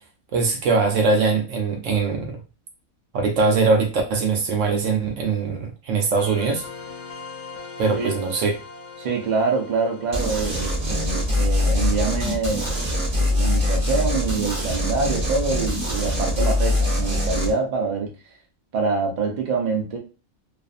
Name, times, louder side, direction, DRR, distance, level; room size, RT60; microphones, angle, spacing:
voice 1, 0.3-2.4 3.1-6.6 7.8-8.5, right 4 dB, 70° right, 3 dB, 0.9 m, -21 dB
sound 1, 6.2-13.3, left 5 dB, 65° left, 0.9 m, -41 dB
voice 2, 9.0-18.1 18.7-20.0, right 4 dB, 45° right, 1 dB, 0.6 m, -25 dB
sound 2, 10.1-17.5, left 1 dB, 30° right, 1.0 m, -23 dB
2.5 x 2.5 x 2.4 m, 0.31 s
omnidirectional pair, 1.4 m